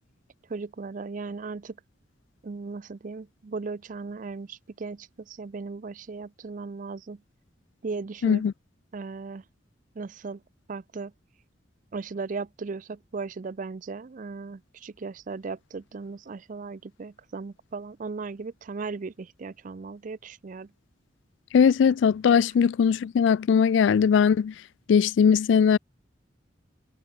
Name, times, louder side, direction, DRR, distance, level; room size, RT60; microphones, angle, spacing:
voice 1, 0.5-1.8 2.4-7.2 7.8-8.4 8.9-9.4 10.0-10.4 10.7-11.1 11.9-20.7, right 4 dB, 40° right, 0.4 m, -37 dB
voice 2, 8.2-8.5 21.5-24.5 24.9-25.8, left 7 dB, 70° left, 0.3 m, -20 dB
head